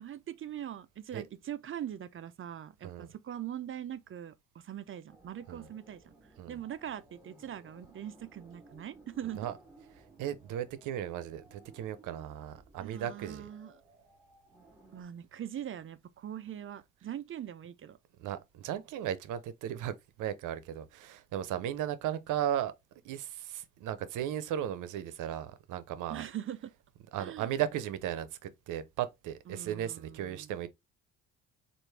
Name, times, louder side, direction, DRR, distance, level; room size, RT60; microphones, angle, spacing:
voice 1, 0.0-9.5 12.8-13.8 14.9-18.0 26.1-26.7 27.2-27.6 29.5-30.5, right 10 dB, 45° right, 0.5 m, -42 dB
sound 1, 5.1-15.0, right 2 dB, 10° right, 2.7 m, -59 dB
voice 2, 10.2-13.5 18.2-22.7 23.0-26.2 27.1-30.7, right 10 dB, 85° right, 0.7 m, -36 dB
4.6 x 2.5 x 3.2 m
cardioid pair, 90°, 30 cm